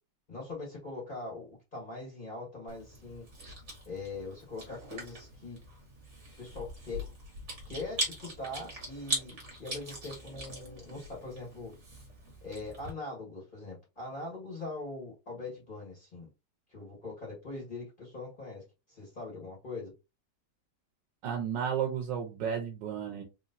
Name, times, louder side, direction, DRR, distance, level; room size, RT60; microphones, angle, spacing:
voice 1, 0.3-3.3 3.8-5.6 6.4-7.0 7.6-11.7 12.4-16.3 16.7-19.9, left 2 dB, 25° left, 1.6 m, -42 dB
Chewing mastication, 2.7-12.9, right 1 dB, 45° right, 1.8 m, -41 dB
voice 2, 21.2-23.2, right 8 dB, 90° right, 1.5 m, -33 dB
4.1 x 3.1 x 2.6 m
omnidirectional pair, 1.9 m